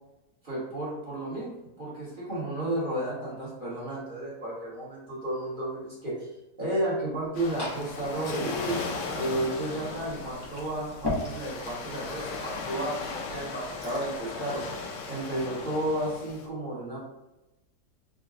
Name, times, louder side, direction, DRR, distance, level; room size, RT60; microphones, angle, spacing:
voice 1, 0.4-6.3 6.6-8.8 9.1-14.7 15.1-17.0, right 1 dB, 35° right, -8 dB, 1.2 m, -32 dB
Liquid, 7.1-14.2, left 2 dB, 20° left, 0.6 m, -40 dB
Waves surf, 7.3-16.5, left 4 dB, 80° left, 1.3 m, -37 dB
3.8 x 2.2 x 3.8 m, 0.97 s
omnidirectional pair, 1.8 m